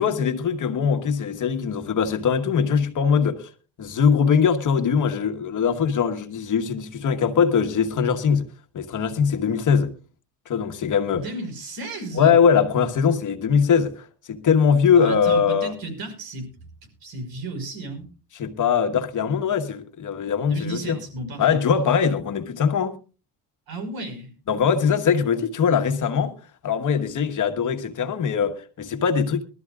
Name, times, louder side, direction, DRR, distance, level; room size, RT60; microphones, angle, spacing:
voice 1, 0.0-3.5 3.8-8.5 8.7-9.9 10.5-11.2 12.1-15.7 18.4-21.0 21.4-22.9 24.5-26.3 26.6-29.4, left 6 dB, 50° left, 1.5 m, -21 dB
voice 2, 11.1-12.4 14.9-16.5 17.0-18.1 20.5-21.6 23.7-24.3, right 2 dB, 60° right, 5.1 m, -33 dB
22.0 x 13.0 x 2.4 m
cardioid pair, 95°, 40 cm